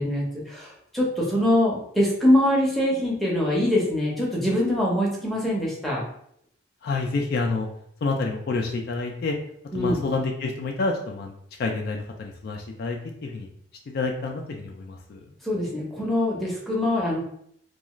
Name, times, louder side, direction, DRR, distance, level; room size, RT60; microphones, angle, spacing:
voice 1, 0.0-6.0 9.7-10.0 15.4-17.2, left 1 dB, ahead, -5 dB, 0.6 m, -23 dB
voice 2, 6.8-7.7 8.0-9.3 9.7-11.3 11.6-13.5 13.9-15.2, left 3 dB, 50° left, 2 dB, 0.3 m, -28 dB
2.4 x 2.3 x 2.9 m, 0.69 s
head